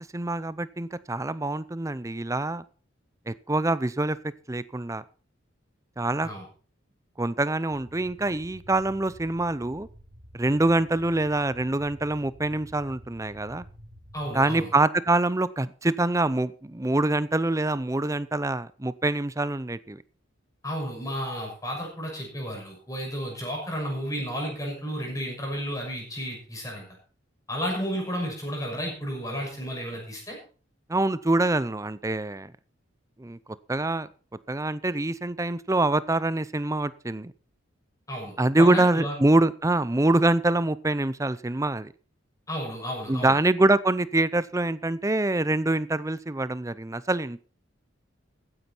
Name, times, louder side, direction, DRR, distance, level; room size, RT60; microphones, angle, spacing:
voice 1, 0.0-2.6 3.3-4.2 4.5-5.0 6.0-6.3 7.2-9.9 10.3-13.6 14.3-20.0 30.9-32.5 33.2-33.4 33.7-34.1 34.5-37.3 38.4-41.9 43.1-47.4, right 2 dB, 15° right, 0.6 m, -25 dB
sound 1, 7.7-14.5, equal, 75° right, 3.9 m, -50 dB
voice 2, 14.1-14.7 20.6-26.8 27.5-30.4 38.1-39.1 42.5-43.4, equal, 15° left, 6.5 m, -32 dB
15.0 x 9.7 x 4.5 m
head